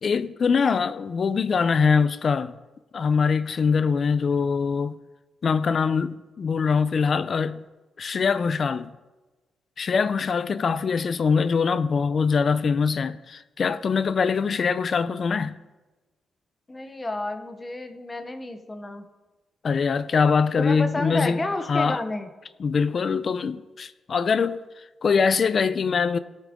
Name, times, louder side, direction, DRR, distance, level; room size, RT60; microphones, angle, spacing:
voice 1, 0.0-2.6 2.9-5.0 5.4-7.6 8.0-8.9 9.8-15.6 19.6-21.4 21.7-22.0 22.6-26.2, left 5 dB, 40° left, 0.5 m, -23 dB
voice 2, 16.7-19.0 20.6-22.3, left 2 dB, 15° left, 0.9 m, -31 dB
18.0 x 8.5 x 3.6 m
wide cardioid pair, 155°, 0 cm